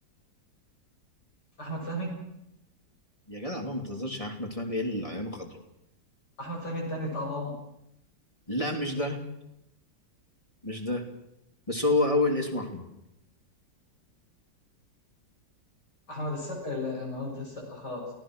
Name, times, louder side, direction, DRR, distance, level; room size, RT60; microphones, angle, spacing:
voice 1, 1.6-2.2 6.4-7.6 16.1-18.1, left 1 dB, 65° left, 0 dB, 7.8 m, -34 dB
voice 2, 3.3-5.6 8.5-9.2 10.6-11.0 11.7-12.8, left 2 dB, 20° left, 1 dB, 3.1 m, -29 dB
29.0 x 17.0 x 6.3 m, 0.83 s
omnidirectional pair, 2.0 m